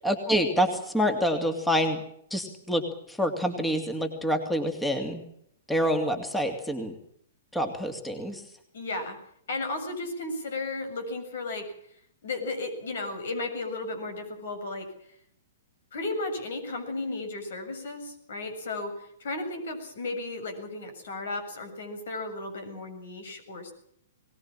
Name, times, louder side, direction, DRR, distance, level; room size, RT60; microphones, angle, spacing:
voice 1, 0.0-2.0 2.3-5.2 5.7-6.9 7.5-8.4, equal, 5° left, 5 dB, 2.7 m, -27 dB
voice 2, 8.7-9.2 9.5-11.7 12.2-14.9 15.9-23.7, left 2 dB, 65° left, 7 dB, 7.5 m, -34 dB
22.5 x 19.0 x 7.5 m, 0.69 s
hypercardioid pair, 115°, 0 cm